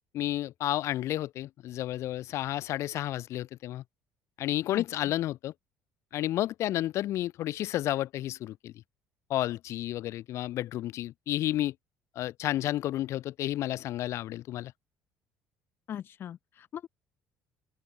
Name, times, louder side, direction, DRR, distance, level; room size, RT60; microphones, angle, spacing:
voice 1, 0.1-3.8 4.4-5.5 6.1-8.7 9.3-11.7 12.2-14.7, left 14 dB, 55° left, 1.9 m, -31 dB
voice 2, 15.9-16.9, left 10 dB, 40° left, 1.6 m, -39 dB
open air
cardioid pair, 155°, 6 cm